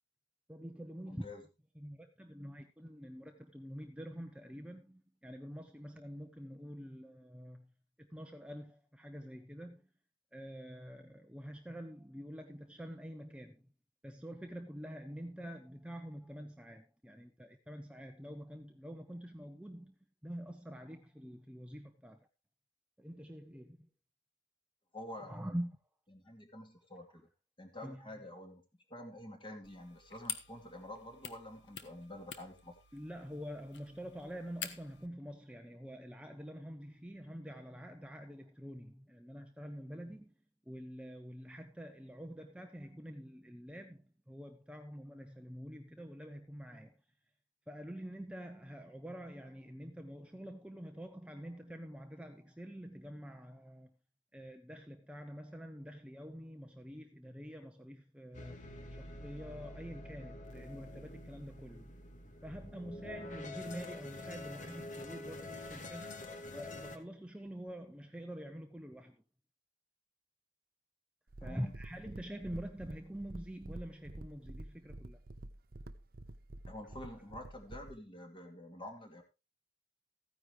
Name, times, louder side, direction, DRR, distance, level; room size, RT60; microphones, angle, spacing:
voice 1, 0.5-1.2 1.8-7.7 8.0-9.8 10.3-13.7 14.0-22.3 23.0-23.9 25.2-25.8 27.8-28.0 32.9-40.3 40.7-46.9 47.7-53.9 54.3-61.9 62.4-66.1 66.5-69.2 71.4-75.2, equal, 5° right, 0.7 m, -46 dB
voice 2, 1.1-1.4 24.9-25.5 26.1-27.3 27.6-28.6 28.9-32.8 71.4-71.7 76.7-79.2, left 1 dB, 25° left, 2.5 m, -48 dB
sound 1, 29.6-35.1, left 8 dB, 75° left, 1.2 m, -48 dB
sound 2, 58.3-67.0, left 2 dB, 45° left, 1.3 m, -47 dB
sound 3, 71.3-78.0, right 1 dB, 55° right, 0.7 m, -49 dB
14.5 x 9.9 x 3.3 m
head